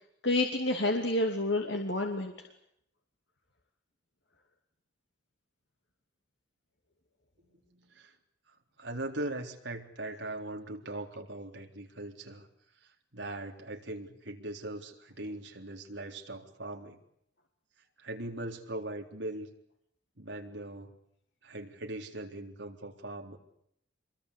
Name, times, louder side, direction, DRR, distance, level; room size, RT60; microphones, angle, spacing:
voice 1, 0.2-2.3, left 2 dB, 65° left, 4 dB, 2.7 m, -29 dB
voice 2, 7.7-8.1 8.8-12.5 13.1-17.0 18.0-19.5 20.2-20.9 21.4-23.4, right 1 dB, 65° right, 3 dB, 3.8 m, -40 dB
26.5 x 22.5 x 8.3 m, 0.72 s
head